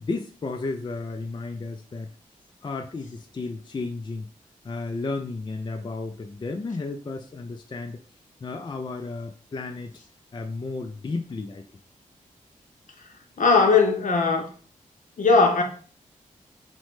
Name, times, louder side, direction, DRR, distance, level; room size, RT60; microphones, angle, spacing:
voice 1, 0.0-2.1 2.6-4.3 4.6-8.0 8.4-9.9 10.3-11.7, left 3 dB, 30° left, 0.4 m, -33 dB
voice 2, 13.4-14.5 15.2-15.6, left 4 dB, 65° left, 0.7 m, -18 dB
3.0 x 2.1 x 3.1 m
supercardioid pair, 40°, 15 cm